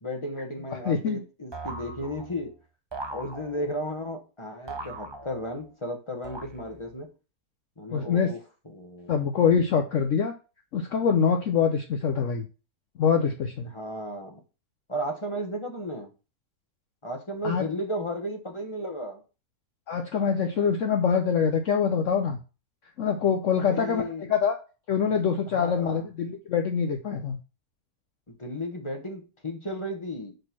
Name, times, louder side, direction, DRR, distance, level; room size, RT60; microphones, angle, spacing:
voice 1, 0.0-2.5 3.1-7.1 7.8-8.4 8.6-9.2 13.6-14.4 14.9-16.1 17.0-19.2 23.6-24.3 25.0-25.3 25.5-26.0 28.3-30.3, equal, 20° left, 4 dB, 1.1 m, -34 dB
voice 2, 0.9-1.2 7.9-8.3 9.1-10.3 10.7-12.5 13.0-13.7 17.4-17.6 19.9-22.4 23.0-24.0 24.3-24.6 24.9-27.4, left 6 dB, 60° left, 5 dB, 1.0 m, -24 dB
sound 1, 1.5-2.5 2.9-3.9 4.7-5.7 6.2-7.0, right 2 dB, 35° right, 0.4 m, -40 dB
5.3 x 4.3 x 5.9 m, 0.32 s
omnidirectional pair, 1.7 m